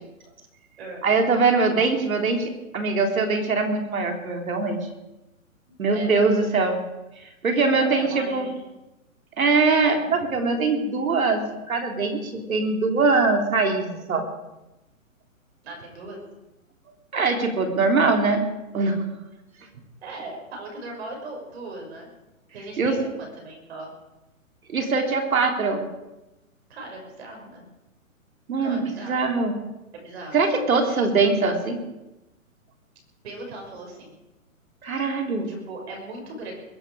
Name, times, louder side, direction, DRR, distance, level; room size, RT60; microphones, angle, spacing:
voice 1, 1.0-4.9 5.8-6.8 7.2-8.5 9.4-11.4 11.7-14.3 17.1-18.5 18.7-19.0 22.8-23.0 24.7-25.8 28.5-29.5 30.3-31.8 34.8-35.5, right 4 dB, 80° right, 4 dB, 3.4 m, -22 dB
voice 2, 5.7-6.5 7.6-8.6 15.6-16.2 19.7-22.1 22.5-23.9 26.7-27.7 28.6-29.4 29.9-30.4 30.9-31.0 33.2-34.1 35.4-36.5, right 2 dB, 50° right, 0 dB, 6.0 m, -39 dB
22.0 x 11.0 x 4.9 m, 1.0 s
hypercardioid pair, 160°, 41 cm